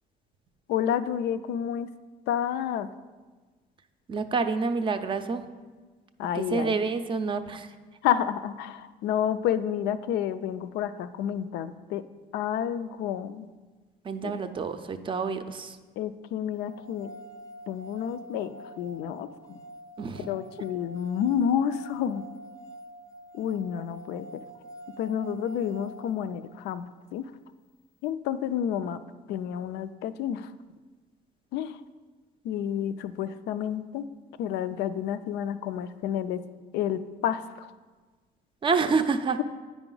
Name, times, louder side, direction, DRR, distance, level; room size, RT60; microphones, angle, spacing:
voice 1, 0.7-1.9 2.3-2.9 6.2-6.8 8.0-12.0 12.3-13.5 14.2-14.3 16.0-17.1 17.7-19.6 20.3-22.2 23.3-24.3 25.0-27.3 28.0-29.0 29.3-30.5 31.5-31.8 32.4-34.1 34.4-36.4 36.7-37.7, left 9 dB, 80° left, 12 dB, 0.4 m, -30 dB
voice 2, 4.1-5.5 6.3-7.7 14.0-15.8 20.0-20.3 38.6-39.4, right 4 dB, 30° right, 8 dB, 0.5 m, -28 dB
sound 1, 16.7-26.8, right 1 dB, 20° left, 0.5 m, -47 dB
8.9 x 4.9 x 3.8 m, 1.3 s
cardioid pair, 110°, 17 cm